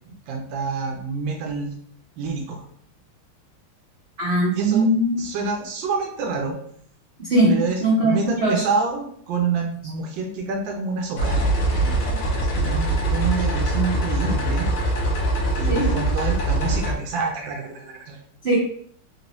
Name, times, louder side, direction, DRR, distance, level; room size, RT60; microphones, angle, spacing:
voice 1, 0.0-1.7 2.2-2.6 4.5-4.9 5.2-6.6 7.5-11.5 11.8-14.7 15.6-18.2, right 4 dB, 75° right, 2 dB, 1.2 m, -27 dB
voice 2, 4.2-5.2 7.2-8.6 15.7-15.9 18.4-18.5, right 1 dB, 45° right, -8 dB, 0.8 m, -20 dB
sound 1, 11.2-16.9, right 1 dB, 60° left, 0.9 m, -22 dB
3.6 x 2.7 x 2.9 m, 0.62 s
omnidirectional pair, 2.4 m